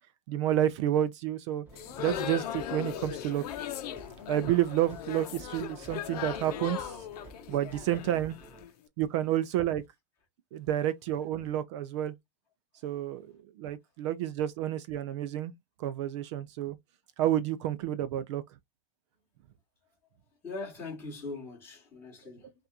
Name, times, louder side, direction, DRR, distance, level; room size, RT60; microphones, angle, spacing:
voice 1, 0.3-1.7 2.0-3.4 4.3-7.0 7.5-8.4 9.0-9.8 10.5-12.1 12.8-15.5 15.8-16.8 17.2-18.4, right 12 dB, 45° right, 0.5 m, -30 dB
sound 1, 1.6-8.6, right 2 dB, 10° right, 0.8 m, -52 dB
sound 2, 1.7-8.7, left 10 dB, 65° left, 0.8 m, -38 dB
voice 2, 20.4-22.5, left 3 dB, 10° left, 2.5 m, -41 dB
5.7 x 2.5 x 2.8 m
supercardioid pair, 175°, 21 cm